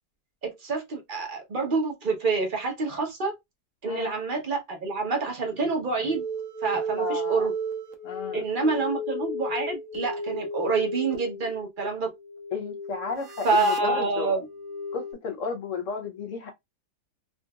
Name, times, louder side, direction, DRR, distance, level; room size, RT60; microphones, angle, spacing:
voice 1, 0.4-3.3 3.8-6.2 6.6-7.5 8.3-12.1 13.4-14.4, right 4 dB, 40° right, 0.8 m, -27 dB
sound 1, 6.0-15.1, right 1 dB, 60° right, 1.1 m, -34 dB
voice 2, 7.0-7.5 8.0-8.8 12.5-14.3 14.9-16.5, left 5 dB, 60° left, 1.0 m, -33 dB
3.8 x 2.5 x 2.3 m
omnidirectional pair, 1.7 m